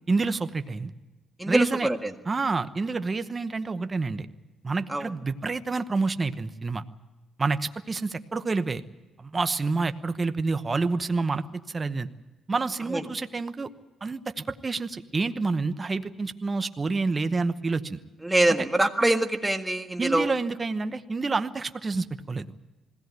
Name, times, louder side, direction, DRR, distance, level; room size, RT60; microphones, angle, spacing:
voice 1, 0.1-0.9 1.5-1.9 2.3-4.3 4.6-6.8 7.4-8.8 9.2-12.1 12.5-13.7 14.0-18.0 20.0-22.5, right 3 dB, 30° right, 10 dB, 1.0 m, -28 dB
voice 2, 1.4-2.1 4.9-5.1 12.9-13.0 18.2-20.3, right 1 dB, 10° right, 5 dB, 1.7 m, -24 dB
21.0 x 17.0 x 9.5 m, 1.2 s
cardioid pair, 90°, 0 cm